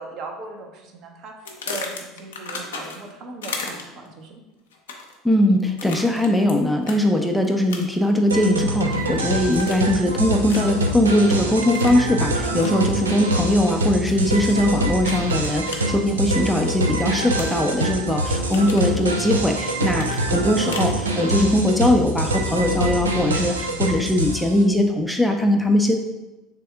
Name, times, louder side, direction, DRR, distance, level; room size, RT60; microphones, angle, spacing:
voice 1, 0.0-1.3 1.7-4.3 12.5-12.7, right 2 dB, 50° right, 2 dB, 0.7 m, -37 dB
sound 1, 1.5-3.1 3.4-4.1 4.7-5.2 5.8-6.5 6.8-7.0 7.7-8.1 8.5-9.1 9.5-10.0 10.5-10.8 11.7-12.0 12.6-12.8 14.1-14.5 15.0-15.8 17.4-18.0 18.3-18.9 20.0-21.0, left 4 dB, 75° left, 0.5 m, -35 dB
voice 2, 5.2-25.9, left 1 dB, 5° left, 3 dB, 0.4 m, -20 dB
sound 2, 8.3-24.6, right 1 dB, 85° right, 0.4 m, -25 dB
3.4 x 3.3 x 3.4 m, 1.1 s
figure-of-eight pair, 70°, 0 cm